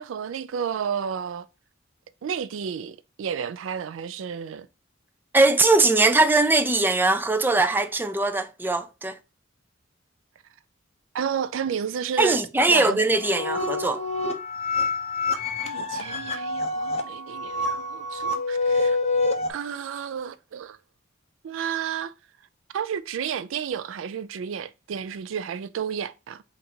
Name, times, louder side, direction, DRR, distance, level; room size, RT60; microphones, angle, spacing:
voice 1, 0.0-1.5 2.2-4.7 11.1-12.4 12.7-13.1 15.6-19.0 19.5-20.8 21.4-22.1 22.7-26.4, right 7 dB, 85° right, 0.4 m, -31 dB
voice 2, 5.3-9.2 12.2-14.0, right 2 dB, 10° right, 0.3 m, -21 dB
sound 1, 13.0-19.5, left 3 dB, 35° left, 0.6 m, -27 dB
3.9 x 2.5 x 4.2 m
head